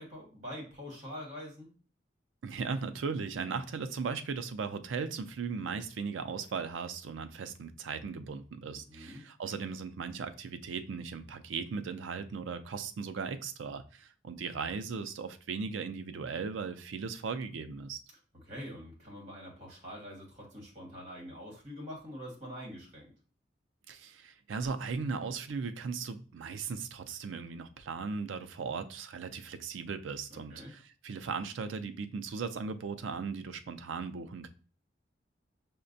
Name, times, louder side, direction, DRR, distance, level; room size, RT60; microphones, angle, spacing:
voice 1, 0.0-1.7 8.7-9.2 18.3-23.1 30.3-30.7, equal, 40° right, 1.3 m, -45 dB
voice 2, 2.4-18.0 23.9-34.5, right 5 dB, 90° right, 0.4 m, -37 dB
5.7 x 2.2 x 2.6 m
head